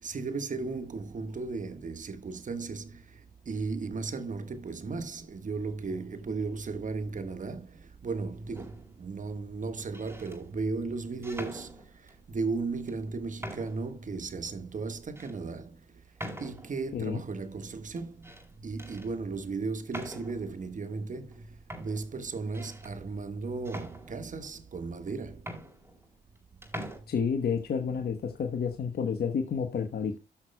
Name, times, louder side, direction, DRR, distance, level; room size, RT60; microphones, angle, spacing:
voice 1, 0.0-15.8 16.4-18.3 18.6-25.5, right 4 dB, 45° right, 1.4 m, -36 dB
sound 1, 8.5-9.0 9.8-10.4 11.2-12.2 12.9-13.0 13.4-13.9 14.4-14.5 15.2-15.3 16.2-16.8 18.0-18.5 18.8-19.1 19.9-20.5 21.3-21.4 21.7-22.9 23.6-24.5 25.1-25.2 25.4-26.4 26.6-27.0, equal, 15° right, 4.3 m, -43 dB
voice 2, 16.9-17.2 27.1-30.2, left 6 dB, 60° left, 1.1 m, -30 dB
17.0 x 6.2 x 2.2 m
cardioid pair, 60°, 18 cm